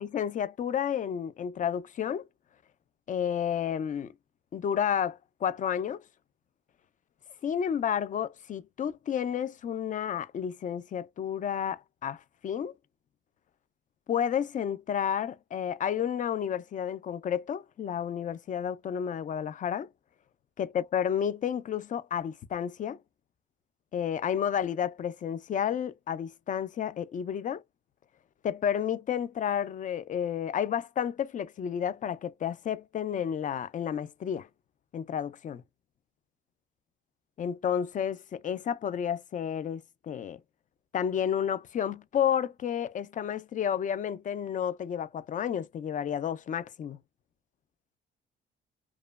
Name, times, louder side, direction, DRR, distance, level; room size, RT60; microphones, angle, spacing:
voice 1, 0.0-2.3 3.1-4.1 4.5-6.0 7.4-12.7 14.1-19.9 20.6-23.0 23.9-27.6 28.4-34.5 34.9-35.6 37.4-40.4 40.9-47.0, left 8 dB, 40° left, 0.4 m, -31 dB
3.0 x 2.2 x 2.3 m
cardioid pair, 90°, 20 cm